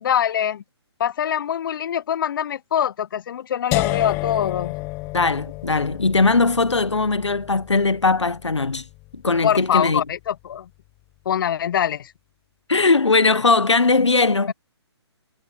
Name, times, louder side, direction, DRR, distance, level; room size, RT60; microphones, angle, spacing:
voice 1, 0.0-0.6 1.0-4.8 9.4-10.7 11.2-12.1 14.5-14.6, left 9 dB, 50° left, 1.1 m, -23 dB
sound 1, 3.7-9.6, left 22 dB, 15° left, 0.4 m, -31 dB
voice 2, 5.1-8.8 9.1-10.0 12.7-14.5, left 3 dB, 85° left, 1.5 m, -19 dB
figure-of-eight pair, 135°, 14 cm